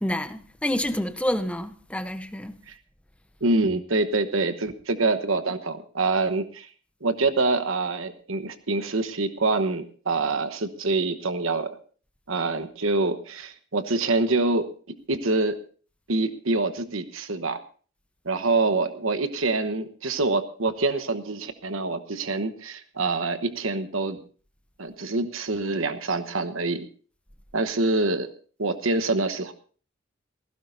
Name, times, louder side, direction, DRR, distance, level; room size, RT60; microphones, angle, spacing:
voice 1, 0.0-2.6, left 1 dB, 5° left, 0.8 m, -28 dB
voice 2, 3.4-6.7 7.0-11.8 12.3-15.6 16.1-17.6 18.2-24.2 24.8-26.9 27.5-28.3 28.6-29.5, right 3 dB, 75° right, 1.1 m, -26 dB
19.5 x 16.5 x 2.7 m
head